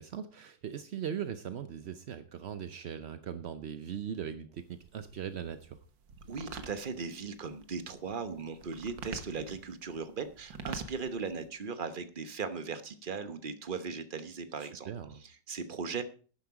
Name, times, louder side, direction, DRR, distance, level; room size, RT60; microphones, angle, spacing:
voice 1, 0.0-5.8 14.6-15.2, right 8 dB, 65° right, 11 dB, 0.6 m, -40 dB
sound 1, 4.6-11.5, right 5 dB, 90° right, 2.0 m, -47 dB
voice 2, 6.2-14.9 15.2-16.0, right 5 dB, 35° right, 10 dB, 0.9 m, -38 dB
12.0 x 10.0 x 4.8 m, 0.39 s
omnidirectional pair, 1.9 m